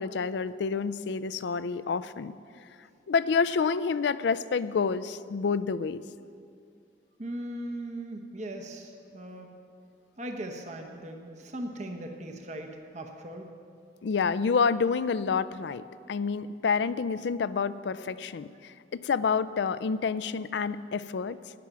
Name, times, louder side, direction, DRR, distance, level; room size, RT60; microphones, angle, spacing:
voice 1, 0.0-2.3 3.1-6.0 14.0-21.4, left 5 dB, 70° left, 15 dB, 0.4 m, -28 dB
voice 2, 7.2-9.5 10.2-13.5, right 1 dB, 40° right, 3 dB, 0.9 m, -39 dB
12.0 x 9.7 x 6.1 m, 2.4 s
head